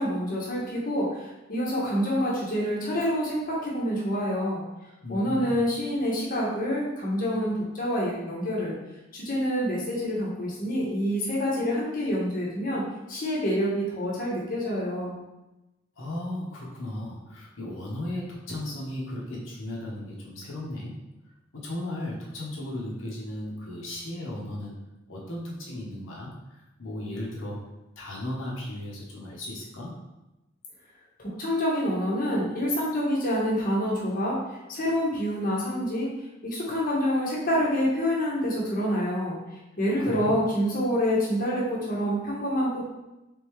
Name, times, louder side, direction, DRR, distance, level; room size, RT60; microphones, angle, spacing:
voice 1, 0.0-4.6 5.1-8.7 9.1-12.8 13.1-15.2 31.2-34.4 34.7-36.1 36.4-39.4 39.8-42.8, equal, 45° left, -5 dB, 1.0 m, -27 dB
voice 2, 5.0-5.6 16.0-20.9 21.5-24.8 25.1-27.6 28.0-29.9 40.0-40.4, left 1 dB, 80° left, -4 dB, 1.0 m, -36 dB
3.7 x 3.6 x 3.1 m, 0.98 s
head